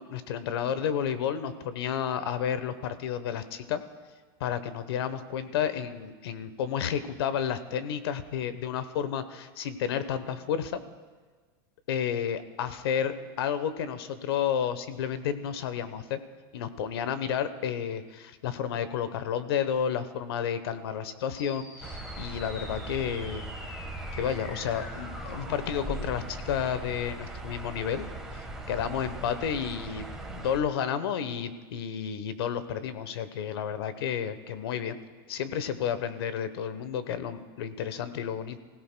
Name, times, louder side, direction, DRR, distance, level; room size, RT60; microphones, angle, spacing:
voice 1, 0.0-3.8 4.4-10.8 11.9-16.2 16.5-23.4 24.1-28.1 28.3-35.0 35.3-38.6, left 8 dB, 85° left, 12 dB, 1.0 m, -31 dB
sound 1, 21.3-26.3, left 2 dB, 50° left, 4.3 m, -46 dB
sound 2, 21.8-30.6, right 1 dB, 5° right, 1.3 m, -39 dB
29.5 x 16.5 x 2.2 m, 1.4 s
supercardioid pair, 170°, 13 cm